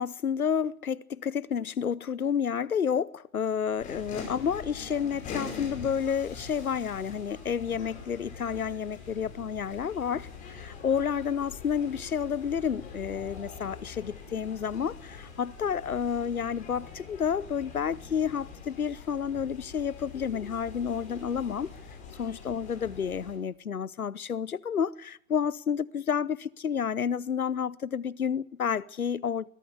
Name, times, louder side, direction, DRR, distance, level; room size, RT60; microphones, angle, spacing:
voice 1, 0.0-21.7 22.2-29.5, left 7 dB, 80° left, 0.9 m, -30 dB
sound 1, 3.8-23.3, left 5 dB, 15° left, 4.8 m, -44 dB
20.5 x 13.5 x 9.8 m
figure-of-eight pair, 130°, 43 cm